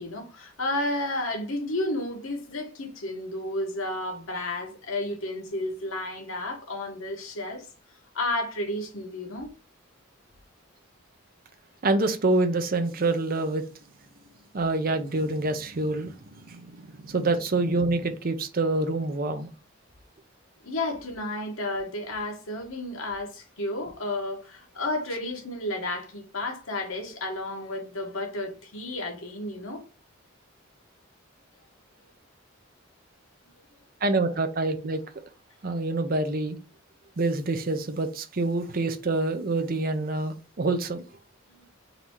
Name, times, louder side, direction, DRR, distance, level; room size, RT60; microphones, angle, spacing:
voice 1, 0.0-7.7 8.1-9.5 20.6-29.8 41.6-41.7, left 1 dB, 85° left, 1.3 m, -32 dB
voice 2, 11.8-13.6 14.5-16.1 16.5-16.7 17.0-19.5 34.0-35.0 35.6-36.6 37.2-41.1, right 2 dB, 45° right, 0.6 m, -26 dB
3.9 x 2.8 x 4.5 m
head